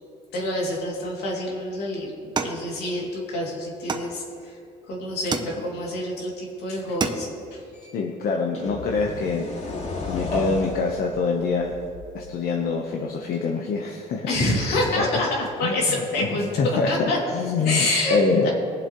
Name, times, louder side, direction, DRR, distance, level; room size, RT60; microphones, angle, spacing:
voice 1, 0.3-2.1 2.4-4.6 4.9-7.6 14.3-17.2 17.6-18.5, left 1 dB, 80° left, -2 dB, 2.7 m, -27 dB
sound 1, 2.4-3.3 3.9-4.6 5.3-6.0 6.5-6.6 6.8-7.6, right 4 dB, 25° right, 0.8 m, -31 dB
sound 2, 7.7-7.9 8.5-12.3, left 3 dB, 45° left, 2.1 m, -33 dB
voice 2, 7.9-9.5 10.0-11.7 12.1-15.2 15.6-15.7 16.2-17.9 18.1-18.5, left 4 dB, 60° left, 1 dB, 1.1 m, -25 dB
20.5 x 7.5 x 3.1 m, 2.5 s
cardioid pair, 110°, 17 cm